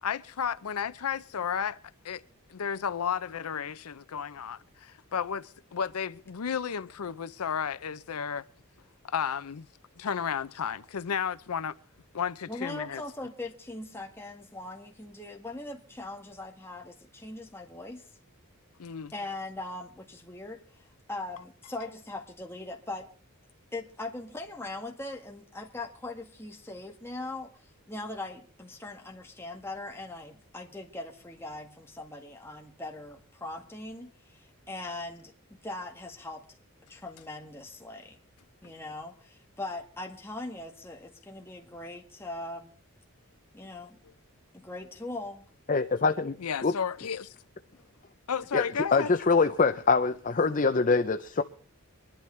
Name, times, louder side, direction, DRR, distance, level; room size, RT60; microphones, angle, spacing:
voice 1, 0.0-1.8 2.0-2.2 2.5-8.5 9.0-9.7 10.0-11.7 12.1-13.0 18.8-19.1 46.4-47.3 48.3-49.1, left 7 dB, 90° left, 0.6 m, -33 dB
voice 2, 12.5-18.1 19.1-23.1 23.7-36.4 36.9-38.2 38.6-42.7 43.5-44.0 44.5-45.5, left 2 dB, 10° left, 1.8 m, -40 dB
voice 3, 45.7-46.3 46.6-46.7 48.5-48.6 48.9-51.4, left 4 dB, 35° left, 0.6 m, -24 dB
24.0 x 11.5 x 3.3 m
head